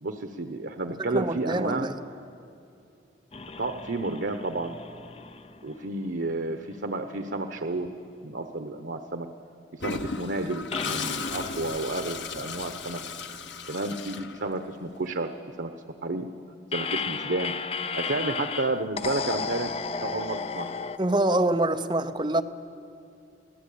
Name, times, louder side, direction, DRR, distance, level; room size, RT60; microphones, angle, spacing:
voice 1, 0.0-1.9 3.6-4.8 5.6-7.9 8.2-9.3 9.7-13.0 13.7-15.3 15.6-15.7 16.0-16.3 16.7-17.5 17.9-19.7 20.0-20.7, right 2 dB, 85° right, 6 dB, 1.0 m, -31 dB
voice 2, 1.0-2.0 21.0-22.4, right 1 dB, 25° right, 8 dB, 0.7 m, -25 dB
sound 1, 3.3-6.8 7.1-7.2 10.7-13.8 16.7-21.0, left 5 dB, 35° left, 0.5 m, -35 dB
Toilet flush, 9.8-14.9, left 4 dB, 85° left, 0.9 m, -35 dB
24.5 x 16.0 x 8.6 m, 2.6 s
head